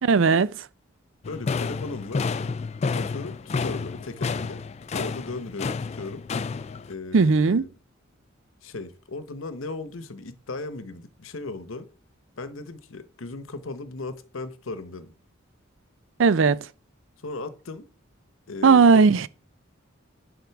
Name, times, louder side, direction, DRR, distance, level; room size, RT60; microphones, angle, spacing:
voice 1, 0.1-0.5 7.1-7.6 16.2-16.6 18.6-19.3, right 4 dB, 70° right, 0.4 m, -17 dB
voice 2, 1.2-2.3 2.9-4.6 4.9-6.2 6.9-7.7 8.6-11.9 12.4-15.1 17.2-17.9 18.5-19.1, left 3 dB, 80° left, 0.9 m, -36 dB
sound 1, 1.2-6.9, left 4 dB, 30° left, 0.3 m, -30 dB
10.5 x 3.6 x 5.8 m
head